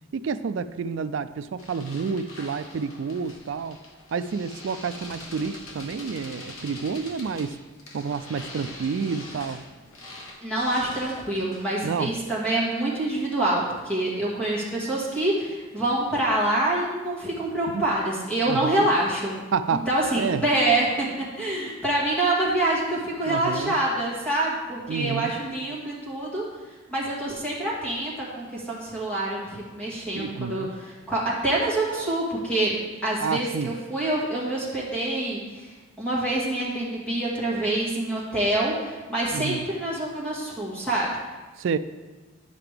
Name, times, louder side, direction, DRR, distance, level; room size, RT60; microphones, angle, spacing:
voice 1, 0.1-3.8 4.1-7.6 7.9-9.6 11.8-12.1 17.7-17.8 18.4-18.9 19.5-20.5 23.3-23.8 24.9-25.3 30.1-30.7 33.2-33.7 39.3-39.7 41.6-41.8, right 5 dB, 55° right, 13 dB, 0.3 m, -29 dB
sound 1, 1.6-11.8, left 2 dB, 70° left, 1.2 m, -43 dB
voice 2, 10.4-19.4 19.9-21.1 21.4-26.4 26.9-32.7 33.0-41.1, right 1 dB, 5° left, -7 dB, 1.8 m, -26 dB
11.0 x 5.7 x 3.4 m, 1.3 s
head